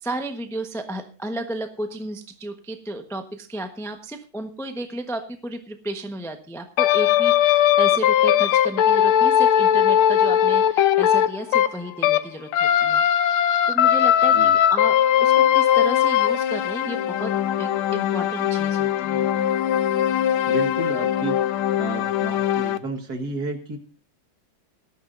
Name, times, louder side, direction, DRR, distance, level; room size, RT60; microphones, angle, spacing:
voice 1, 0.0-17.3 17.6-19.3, right 1 dB, ahead, 6 dB, 0.6 m, -33 dB
sound 1, 6.8-12.3 12.5-22.8, left 10 dB, 85° left, 1.6 m, -19 dB
voice 2, 20.5-21.4 21.8-23.8, right 3 dB, 50° right, 4 dB, 2.1 m, -31 dB
18.5 x 13.0 x 2.6 m, 0.37 s
omnidirectional pair, 2.3 m